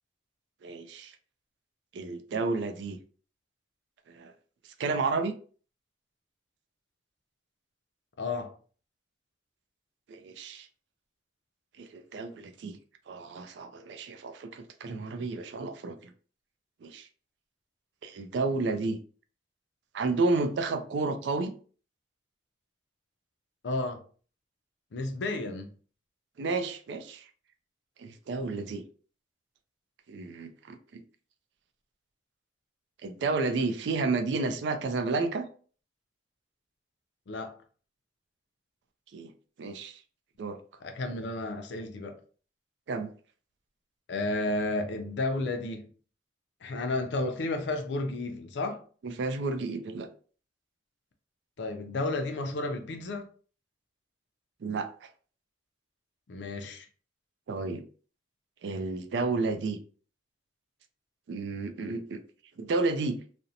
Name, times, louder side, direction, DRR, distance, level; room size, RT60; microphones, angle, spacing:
voice 1, 0.6-1.1 1.9-3.0 4.1-4.3 4.8-5.3 10.1-10.7 11.8-12.8 13.1-16.1 16.8-17.1 18.0-19.0 19.9-21.5 26.4-27.2 28.0-28.8 30.1-30.8 33.0-35.5 39.1-39.3 39.6-40.0 40.4-40.6 42.9-43.1 49.0-50.1 54.6-54.9 57.5-57.8 58.6-59.8 61.3-62.2 62.6-63.2, right 3 dB, 65° right, 0.3 m, -31 dB
voice 2, 8.2-8.5 23.6-24.0 24.9-25.7 37.3-37.5 40.8-42.2 44.1-45.9 46.6-48.8 51.6-53.3 56.3-56.9, left 2 dB, 65° left, 0.4 m, -32 dB
2.5 x 2.0 x 2.7 m
head